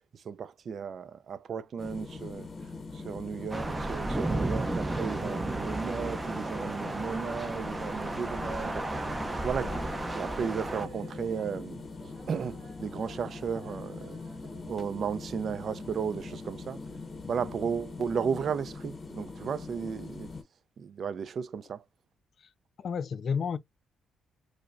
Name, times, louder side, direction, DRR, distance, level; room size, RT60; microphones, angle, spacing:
voice 1, 0.1-2.5 2.9-9.8 10.1-14.2 14.7-16.8 17.3-20.3 20.8-21.8, right 6 dB, 55° right, 0.4 m, -35 dB
sound 1, 1.8-20.4, left 3 dB, 30° left, 0.7 m, -42 dB
Thunder / Rain, 3.5-10.9, right 2 dB, 20° right, 0.6 m, -33 dB
sound 2, 7.7-16.7, right 4 dB, 75° right, 0.9 m, -52 dB
voice 2, 22.8-23.6, left 6 dB, 55° left, 0.4 m, -33 dB
4.8 x 2.1 x 2.3 m
cardioid pair, 90°, 0 cm